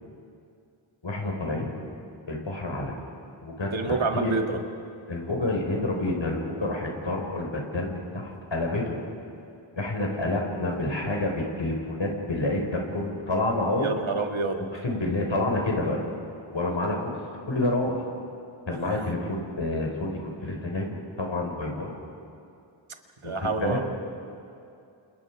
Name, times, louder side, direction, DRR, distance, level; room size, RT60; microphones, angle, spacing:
voice 1, 1.0-1.7 2.3-3.0 3.4-4.3 5.1-9.0 9.8-13.9 14.8-16.0 16.5-17.2 17.5-18.1 18.7-21.9 23.2-23.8, left 2 dB, 70° left, 0 dB, 5.0 m, -28 dB
voice 2, 3.7-4.6 13.8-14.7 23.2-23.8, right 3 dB, 80° right, 4 dB, 1.8 m, -27 dB
29.0 x 28.5 x 4.8 m, 2.6 s
wide cardioid pair, 50°, 47 cm